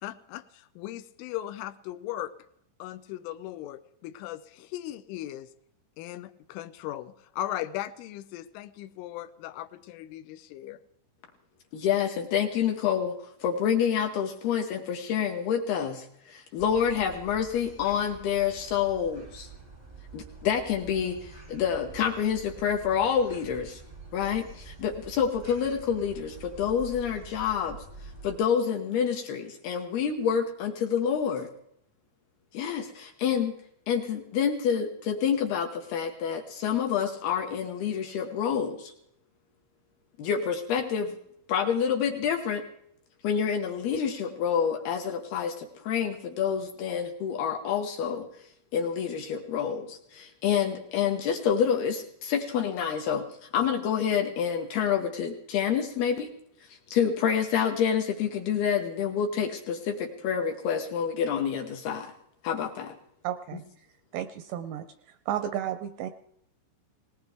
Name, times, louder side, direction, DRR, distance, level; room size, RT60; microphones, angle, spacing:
voice 1, 0.0-2.3 2.8-5.5 6.0-10.8, left 13 dB, 90° left, 13 dB, 3.3 m, -38 dB
voice 2, 11.7-13.1 13.4-19.5 20.1-23.8 24.1-27.8 28.2-31.5 32.5-33.6 33.9-38.9 40.2-41.2 41.5-42.7 43.2-48.3 48.7-53.3 53.5-56.3 56.7-62.1 62.4-63.0, left 7 dB, 75° left, 3 dB, 2.4 m, -28 dB
sound 1, 16.6-28.4, right 4 dB, 30° right, 0.7 m, -47 dB
voice 3, 63.2-63.6 64.1-64.9 65.3-66.1, right 10 dB, 80° right, 9 dB, 2.5 m, -32 dB
19.5 x 19.0 x 3.5 m, 0.72 s
omnidirectional pair, 5.5 m